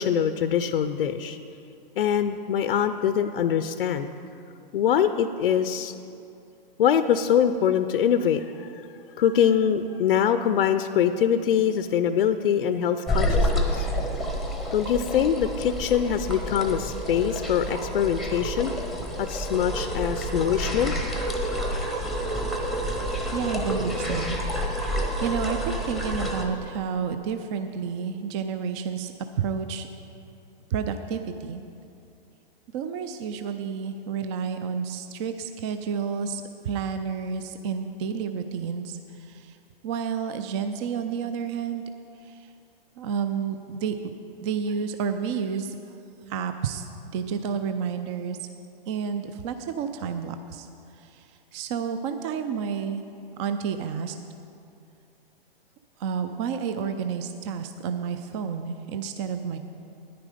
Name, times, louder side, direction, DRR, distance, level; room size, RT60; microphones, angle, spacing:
voice 1, 0.0-1.4 2.0-4.1 4.7-5.9 6.8-8.9 9.2-13.9 14.7-18.7 19.2-20.9, left 8 dB, 70° left, 10 dB, 0.6 m, -23 dB
sound 1, 13.1-26.4, equal, ahead, 0.8 m, -28 dB
voice 2, 23.3-29.1 29.4-29.9 30.7-31.6 32.7-39.6 39.8-41.8 42.2-42.5 43.0-43.9 44.4-46.0 46.3-48.4 48.9-50.7 50.9-53.0 53.4-54.2 56.0-59.6, right 6 dB, 30° right, 8 dB, 0.4 m, -30 dB
10.0 x 9.9 x 5.0 m, 2.6 s
hypercardioid pair, 135°, 29 cm